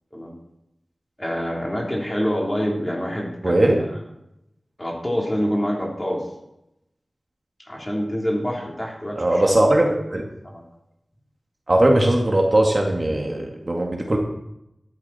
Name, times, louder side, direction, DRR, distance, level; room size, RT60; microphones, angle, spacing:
voice 1, 1.2-3.9 4.8-6.3 7.6-9.6 10.4-10.6, equal, 20° left, -2 dB, 3.8 m, -26 dB
voice 2, 3.4-3.8 9.2-10.2 11.7-14.2, right 1 dB, 35° right, 1 dB, 2.0 m, -19 dB
13.0 x 12.0 x 4.3 m, 0.84 s
wide cardioid pair, 75°, 0 cm